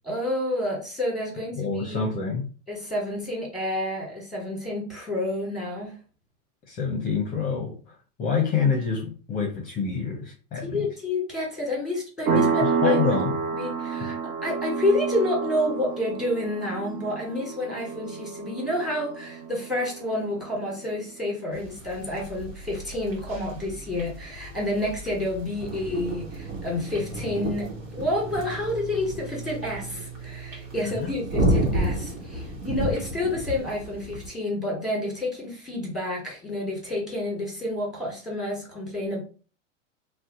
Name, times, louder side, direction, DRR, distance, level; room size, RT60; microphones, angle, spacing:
voice 1, 0.1-2.0 2.7-5.9 10.6-13.2 13.6-14.1 14.4-39.2, left 1 dB, ahead, 1.4 m, -29 dB
voice 2, 1.5-2.5 6.7-10.9 12.3-13.4 14.0-14.2 30.8-31.1, left 5 dB, 20° left, 0.6 m, -27 dB
sound 1, 12.3-20.6, right 5 dB, 25° right, 0.4 m, -29 dB
sound 2, 21.5-34.3, right 1 dB, 85° right, 1.1 m, -32 dB
2.7 x 2.2 x 3.6 m
hypercardioid pair, 110°, 38 cm